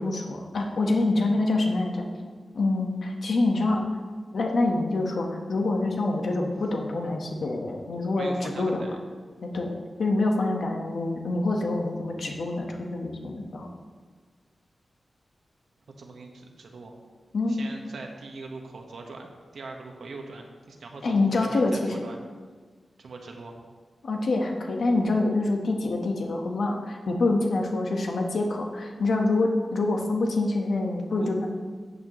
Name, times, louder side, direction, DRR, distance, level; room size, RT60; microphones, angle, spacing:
voice 1, 0.0-3.9 4.3-8.8 9.5-9.7 10.0-13.7 17.3-17.6 21.0-21.9 24.0-31.5, left 2 dB, 65° left, 2 dB, 1.2 m, -26 dB
voice 2, 8.2-9.0 16.0-16.9 17.5-22.2 23.0-23.5 31.2-31.5, right 3 dB, 75° right, 2 dB, 1.3 m, -42 dB
13.0 x 8.3 x 3.1 m, 1.5 s
wide cardioid pair, 170°, 0 cm